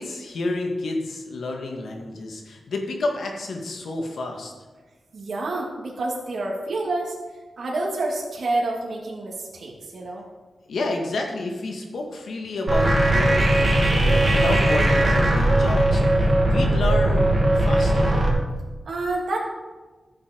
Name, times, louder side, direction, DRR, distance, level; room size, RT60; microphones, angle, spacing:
voice 1, 0.0-4.5 10.7-17.3 17.6-18.2, left 2 dB, 80° left, 2 dB, 2.2 m, -30 dB
voice 2, 5.1-7.1 7.6-10.2 18.9-19.4, right 2 dB, 65° right, -3 dB, 2.7 m, -28 dB
sound 1, 12.7-18.3, right 1 dB, 35° right, 2.6 m, -19 dB
14.5 x 7.3 x 5.4 m, 1.3 s
wide cardioid pair, 100°, 0 cm